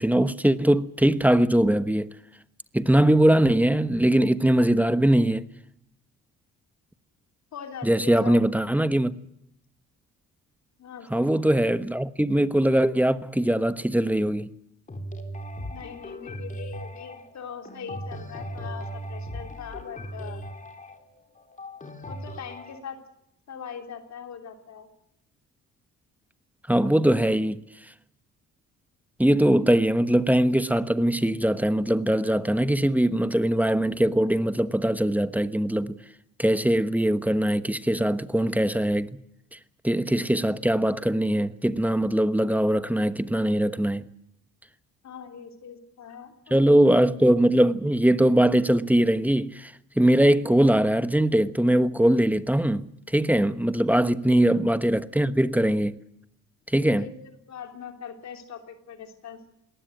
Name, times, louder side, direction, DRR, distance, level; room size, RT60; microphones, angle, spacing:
voice 1, 0.0-2.1 2.7-5.5 7.8-9.1 11.1-14.5 26.7-27.6 29.2-36.0 36.4-39.2 39.8-44.1 46.5-56.0 56.7-57.0, right 1 dB, 5° right, 1.1 m, -21 dB
voice 2, 7.5-8.5 10.8-11.3 15.7-20.4 22.1-23.0 23.5-24.9 45.0-46.6 54.2-54.4 56.9-59.4, left 7 dB, 65° left, 3.2 m, -41 dB
sound 1, 14.9-22.8, equal, 25° left, 3.5 m, -38 dB
21.0 x 18.5 x 9.1 m
cardioid pair, 90°, 30 cm